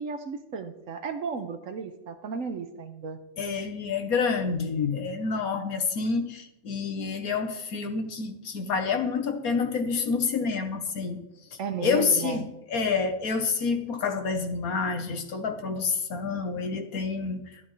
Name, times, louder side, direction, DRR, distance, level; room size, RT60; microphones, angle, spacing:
voice 1, 0.0-3.2 11.6-12.5, right 5 dB, 65° right, 8 dB, 1.2 m, -34 dB
voice 2, 3.4-11.2 11.8-17.4, left 5 dB, 75° left, 6 dB, 1.6 m, -28 dB
13.0 x 11.5 x 3.2 m, 0.88 s
omnidirectional pair, 1.5 m